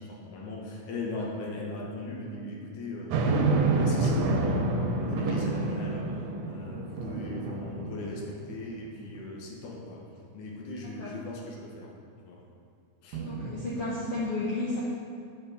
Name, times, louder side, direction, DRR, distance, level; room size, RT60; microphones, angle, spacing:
voice 1, 0.0-10.0 10.3-11.9 12.2-12.4 13.0-13.2, left 2 dB, 80° left, -2 dB, 2.6 m, -39 dB
sound 1, 3.1-8.6 9.2-9.3 13.1-14.2, right 3 dB, 90° right, 2.3 m, -28 dB
voice 2, 13.2-14.8, left 2 dB, 60° left, -6 dB, 1.8 m, -32 dB
6.7 x 5.6 x 7.1 m, 2.3 s
omnidirectional pair, 3.5 m